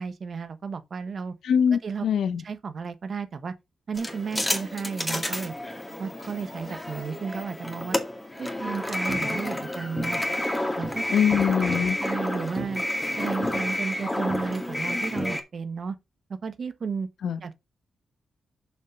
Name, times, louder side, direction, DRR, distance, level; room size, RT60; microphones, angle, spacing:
voice 1, 0.0-1.3 1.8-2.0 2.4-3.5 3.9-5.5 6.0-8.0 8.4-10.2 10.8-11.2 12.0-12.8 13.2-16.0 16.4-17.1 17.4-17.6, right 5 dB, 50° right, 1.2 m, -33 dB
voice 2, 1.4-2.4 11.1-12.0 17.2-17.4, left 7 dB, 80° left, 0.9 m, -23 dB
sound 1, 3.9-15.4, left 1 dB, 10° left, 2.0 m, -30 dB
7.2 x 5.4 x 5.2 m
cardioid pair, 90°, 0 cm